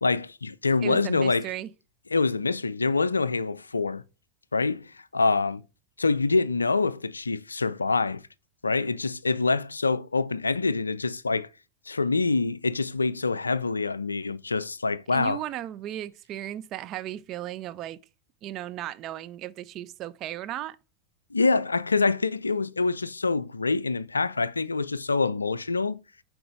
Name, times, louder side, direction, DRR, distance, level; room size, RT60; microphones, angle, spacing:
voice 1, 0.0-1.5 2.1-4.0 4.5-5.6 6.0-8.2 8.6-11.5 11.9-15.4 21.3-26.0, left 3 dB, 80° left, 0.3 m, -25 dB
voice 2, 0.8-1.7 15.1-18.0 18.4-20.8, right 13 dB, 35° right, 0.4 m, -35 dB
7.7 x 4.6 x 3.2 m
figure-of-eight pair, 90°, 0 cm